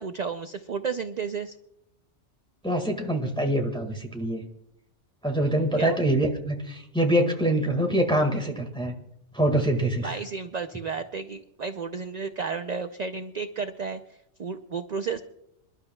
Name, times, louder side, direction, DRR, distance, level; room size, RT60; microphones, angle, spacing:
voice 1, 0.0-1.6 5.8-6.0 10.0-15.2, right 5 dB, 45° right, 8 dB, 0.6 m, -32 dB
voice 2, 2.6-4.4 5.2-9.0 9.3-10.2, right 1 dB, 5° left, 3 dB, 1.7 m, -25 dB
27.0 x 12.0 x 2.3 m, 0.78 s
omnidirectional pair, 1.2 m